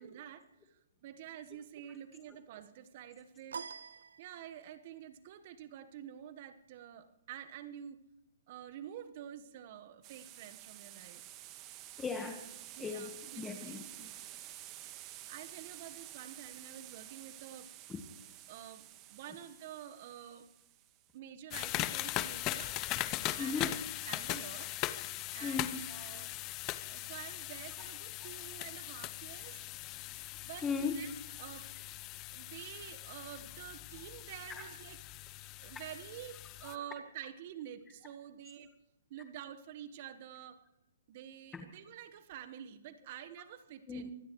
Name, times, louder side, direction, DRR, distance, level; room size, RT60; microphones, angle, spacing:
voice 1, 0.0-3.6 4.2-8.0 8.5-11.2 12.8-13.8 15.0-17.7 18.5-20.5 21.1-22.8 23.3-23.8 24.1-24.7 25.3-26.3 26.9-29.6 30.4-31.1 31.4-31.7 32.3-35.0 35.6-38.7 39.1-40.6 41.1-44.1, right 10 dB, 45° right, 10 dB, 1.3 m, -48 dB
sound 1, 3.5-4.9, right 6 dB, 75° right, 0.4 m, -46 dB
sound 2, 10.0-21.1, right 14 dB, 30° right, 1.5 m, -51 dB
voice 2, 12.0-14.1 17.9-18.0 23.1-23.8 25.4-26.3 30.6-31.0 34.5-34.7 36.6-36.8 41.5-41.6 43.9-44.1, left 4 dB, 15° left, 5 dB, 1.4 m, -39 dB
sound 3, 21.5-36.8, left 16 dB, 30° left, 0.7 m, -40 dB
24.5 x 16.0 x 3.2 m, 0.93 s
hypercardioid pair, 130°, 0 cm